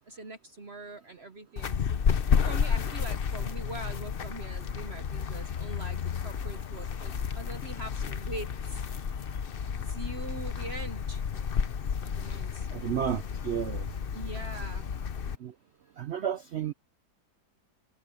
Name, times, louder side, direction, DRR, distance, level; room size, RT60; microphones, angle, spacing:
voice 1, 0.1-1.8 2.3-8.8 9.9-11.2 12.0-12.7 14.1-14.9, right 2 dB, 45° right, 1.1 m, -43 dB
sound 1, 1.6-15.4, left 7 dB, 45° left, 0.7 m, -31 dB
voice 2, 12.7-13.8 15.4-15.5 16.0-16.7, right 9 dB, 70° right, 0.6 m, -32 dB
omnidirectional pair, 1.8 m